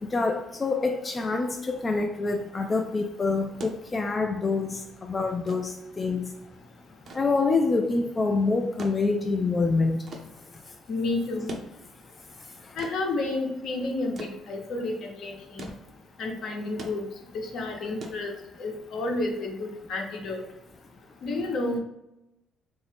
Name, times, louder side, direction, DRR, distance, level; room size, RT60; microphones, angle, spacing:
voice 1, 0.1-6.2 7.1-10.0, left 3 dB, 30° left, 3 dB, 0.3 m, -26 dB
sound 1, 3.6-18.9 20.1-20.2, right 2 dB, 55° right, 0.6 m, -46 dB
voice 2, 10.9-11.6 12.8-15.7 16.2-17.0 17.5-18.3 18.6-20.4 21.2-21.8, left 2 dB, 65° left, 1 dB, 0.8 m, -30 dB
2.7 x 2.6 x 3.4 m, 0.89 s
cardioid pair, 85°, 0 cm